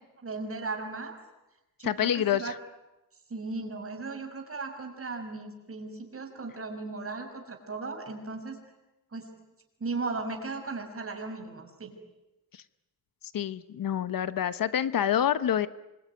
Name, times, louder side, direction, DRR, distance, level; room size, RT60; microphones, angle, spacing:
voice 1, 0.2-1.2 1.8-2.5 3.3-8.6 9.1-9.3 9.8-11.9, right 3 dB, 40° right, 4 dB, 6.1 m, -36 dB
voice 2, 1.8-2.6 13.3-15.7, left 10 dB, 75° left, 14 dB, 1.0 m, -27 dB
26.0 x 23.5 x 9.6 m, 0.97 s
wide cardioid pair, 110°, 34 cm